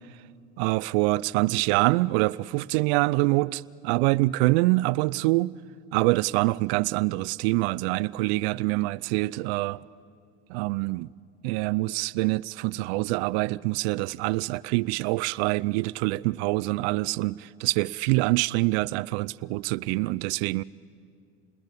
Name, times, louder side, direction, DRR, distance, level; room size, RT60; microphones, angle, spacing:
voice 1, 0.6-5.5 5.9-9.8 10.5-11.1 11.4-20.6, right 21 dB, 70° right, 0.5 m, -25 dB
27.5 x 20.5 x 8.4 m
supercardioid pair, 95°, 33 cm